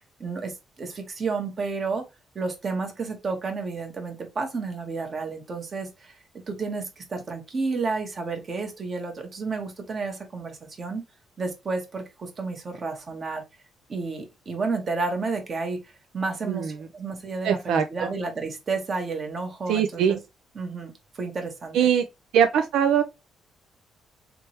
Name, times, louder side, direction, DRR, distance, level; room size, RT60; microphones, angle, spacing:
voice 1, 0.2-2.0 2.3-6.2 6.5-11.0 11.4-13.4 13.9-15.8 16.1-20.2 20.5-21.8, right 4 dB, 40° right, 1.4 m, -31 dB
voice 2, 17.4-18.1 19.7-20.2 21.7-22.0 22.3-23.0, right 8 dB, 85° right, 0.4 m, -22 dB
3.4 x 3.1 x 2.9 m
cardioid pair, 90°, 0 cm